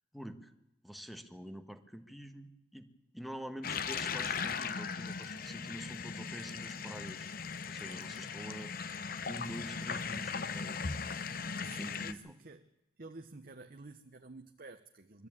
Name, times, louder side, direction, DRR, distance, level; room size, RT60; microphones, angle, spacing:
voice 1, 0.1-0.5 0.8-2.9 3.1-7.3 7.7-8.7 9.3-10.8 11.6-12.3, equal, ahead, 1.4 m, -46 dB
sound 1, 3.6-12.1, left 5 dB, 55° left, 0.8 m, -38 dB
voice 2, 11.6-12.7 13.0-15.3, right 3 dB, 55° right, 0.9 m, -51 dB
23.5 x 13.5 x 8.9 m
head